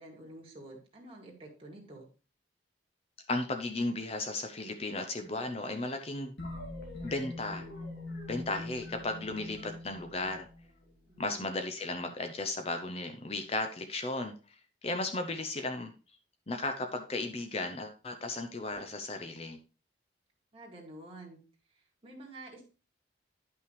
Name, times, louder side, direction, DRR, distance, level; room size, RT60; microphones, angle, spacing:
voice 1, 0.0-2.1 11.1-11.5 20.5-21.4 21.7-22.7, right 2 dB, 30° right, -1 dB, 2.3 m, -49 dB
voice 2, 3.3-6.3 7.0-7.7 8.3-10.5 11.2-14.3 14.8-15.9 16.5-19.6, left 2 dB, 30° left, 6 dB, 0.6 m, -35 dB
sound 1, 6.4-11.1, left 2 dB, 65° left, 2.2 m, -43 dB
10.5 x 5.8 x 3.2 m, 0.34 s
head